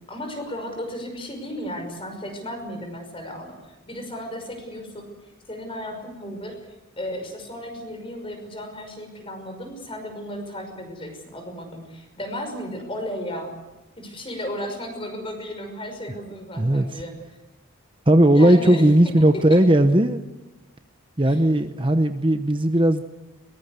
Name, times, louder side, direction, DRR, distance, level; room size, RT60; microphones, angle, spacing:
voice 1, 0.0-5.1 5.5-6.6 7.0-13.5 14.0-17.2 18.3-19.6 21.3-21.4, equal, 25° left, 5 dB, 5.7 m, -34 dB
voice 2, 16.6-17.0 18.1-20.2 21.2-23.0, right 1 dB, 25° right, 8 dB, 0.9 m, -17 dB
23.0 x 22.0 x 8.3 m, 1.0 s
head